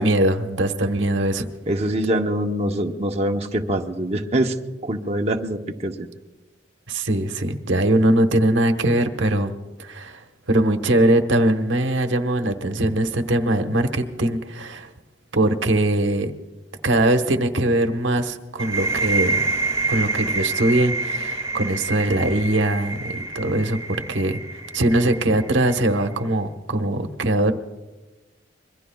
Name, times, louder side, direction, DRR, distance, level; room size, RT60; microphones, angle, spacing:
voice 1, 0.0-1.5 6.9-14.9 15.3-16.3 16.8-19.4 19.9-23.8 24.1-24.4 24.7-27.5, right 1 dB, 90° right, 6 dB, 1.2 m, -21 dB
voice 2, 1.7-4.6 4.8-6.1, right 1 dB, 35° right, 2 dB, 0.8 m, -24 dB
sound 1, 18.6-26.1, right 3 dB, 20° right, 1.9 m, -27 dB
26.0 x 22.5 x 2.3 m, 1.2 s
head